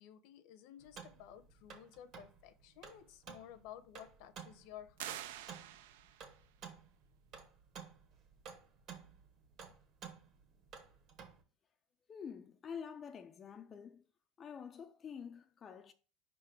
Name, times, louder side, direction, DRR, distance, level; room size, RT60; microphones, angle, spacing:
voice 1, 0.0-5.2, left 10 dB, 60° left, 0.7 m, -54 dB
sound 1, 0.8-11.4, right 6 dB, 40° right, 1.2 m, -54 dB
sound 2, 5.0-6.4, right 11 dB, 90° right, 0.5 m, -46 dB
voice 2, 12.1-14.0 14.4-15.9, left 7 dB, 25° left, 0.3 m, -48 dB
5.3 x 3.7 x 5.9 m
supercardioid pair, 150°, 0 cm